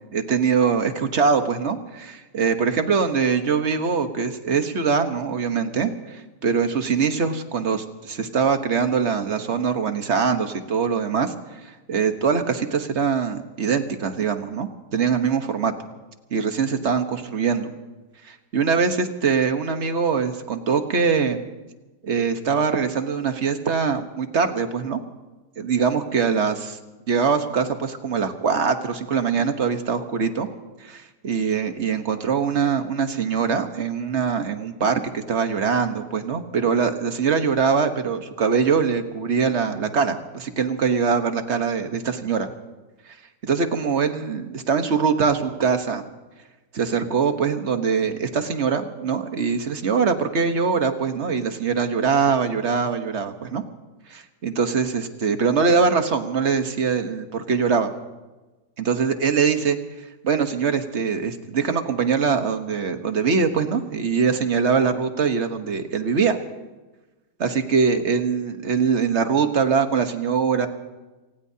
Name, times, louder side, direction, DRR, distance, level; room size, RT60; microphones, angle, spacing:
voice 1, 0.1-11.3 11.9-15.7 16.3-17.7 18.2-21.4 22.0-25.0 25.6-26.8 27.1-30.5 30.8-42.5 43.4-46.0 46.7-53.6 54.1-57.9 58.8-59.8 60.2-66.4 67.4-70.7, right 5 dB, 45° right, 7 dB, 1.3 m, -23 dB
27.5 x 18.5 x 2.8 m, 1.1 s
omnidirectional pair, 1.8 m